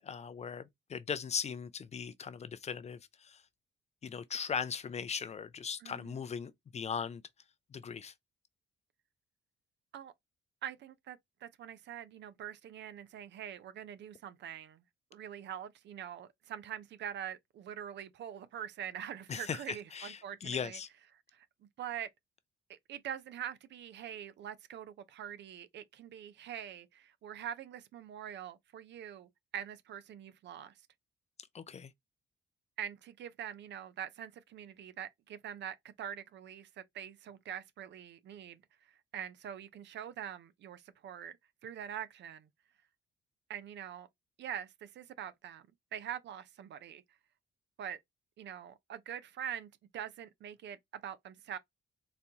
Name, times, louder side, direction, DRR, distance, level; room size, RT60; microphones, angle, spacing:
voice 1, 0.0-3.4 4.0-7.2 7.7-8.1 19.3-20.9 31.5-31.9, left 6 dB, 35° left, 0.4 m, -39 dB
voice 2, 5.8-6.2 9.9-10.1 10.6-14.8 15.1-20.8 21.3-21.5 21.8-22.1 22.7-30.7 32.8-41.4 41.6-42.5 43.5-44.1 44.4-47.0 47.8-48.0 48.4-51.6, right 9 dB, 65° right, 0.5 m, -44 dB
4.1 x 2.2 x 2.7 m
cardioid pair, 90°, 20 cm